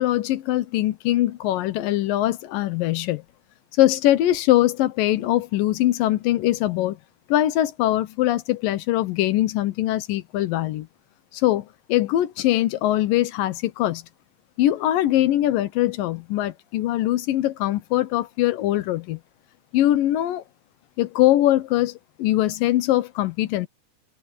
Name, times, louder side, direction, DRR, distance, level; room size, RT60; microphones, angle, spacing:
voice 1, 0.0-3.2 3.8-7.0 7.3-10.9 11.3-14.0 14.6-19.2 19.7-20.4 21.0-21.9 22.2-23.7, left 14 dB, 90° left, 2.7 m, -22 dB
omnidirectional pair, 3.8 m